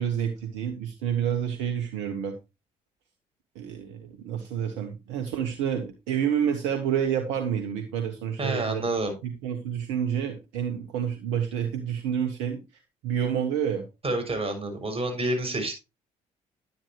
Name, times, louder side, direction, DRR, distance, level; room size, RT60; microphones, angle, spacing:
voice 1, 0.0-2.4 3.5-8.8 9.2-12.6 13.0-13.9, right 8 dB, 80° right, 6 dB, 1.3 m, -29 dB
voice 2, 8.4-9.1 14.0-15.7, right 2 dB, 35° right, 4 dB, 6.3 m, -28 dB
10.5 x 10.0 x 3.0 m, 0.26 s
hypercardioid pair, 55°, 18 cm